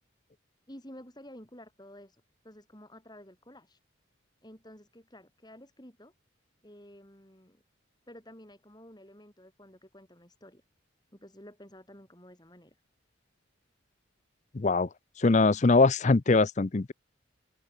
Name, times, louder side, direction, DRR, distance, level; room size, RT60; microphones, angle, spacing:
voice 1, 0.7-3.8 4.4-6.1 6.6-7.6 8.1-10.6 11.1-12.8, left 1 dB, 20° left, 7.6 m, -51 dB
voice 2, 14.5-14.9 15.2-16.9, left 3 dB, 35° left, 0.5 m, -22 dB
open air
head